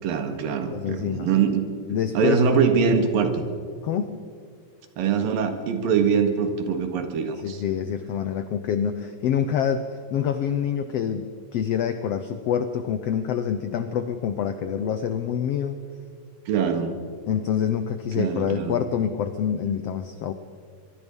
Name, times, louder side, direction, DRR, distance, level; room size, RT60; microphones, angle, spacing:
voice 1, 0.0-1.7 2.2-3.4 5.0-7.6 16.5-16.9 18.2-18.8, right 6 dB, 90° right, 6 dB, 3.5 m, -23 dB
voice 2, 0.7-1.3 1.9-2.6 3.8-4.1 7.4-9.8 10.1-15.8 17.3-20.3, left 8 dB, 80° left, 10 dB, 1.4 m, -26 dB
24.0 x 23.5 x 5.4 m, 2.2 s
omnidirectional pair, 3.9 m